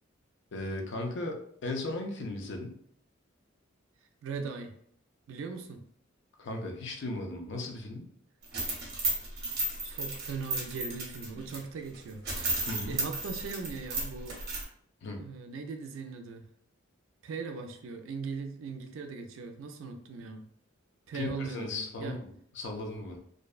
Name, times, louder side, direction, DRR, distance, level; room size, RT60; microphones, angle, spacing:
voice 1, 0.5-2.8 6.4-8.1 12.7-13.0 15.0-15.2 21.1-23.2, left 2 dB, 60° left, 3 dB, 0.4 m, -37 dB
voice 2, 4.2-4.7 5.3-5.8 9.8-12.2 12.9-14.4 15.1-16.4 17.2-20.4 21.1-22.1, right 4 dB, 70° right, 5 dB, 0.4 m, -39 dB
sound 1, 8.4-11.6 11.9-12.0 12.2-14.6, right 2 dB, 55° right, 0.8 m, -33 dB
2.5 x 2.1 x 2.3 m, 0.65 s
head